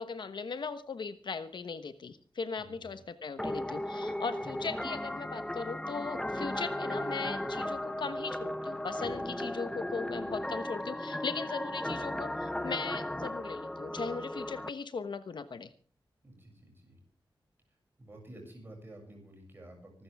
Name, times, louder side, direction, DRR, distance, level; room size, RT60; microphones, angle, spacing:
voice 1, 0.0-15.7, left 5 dB, 60° left, 11 dB, 1.1 m, -38 dB
voice 2, 2.6-3.1 9.7-9.8 16.2-17.0 18.0-20.0, right 1 dB, 25° right, 1 dB, 7.1 m, -51 dB
sound 1, 3.4-14.7, left 1 dB, 5° left, 0.8 m, -36 dB
24.5 x 13.5 x 3.6 m, 0.41 s
wide cardioid pair, 160°, 9 cm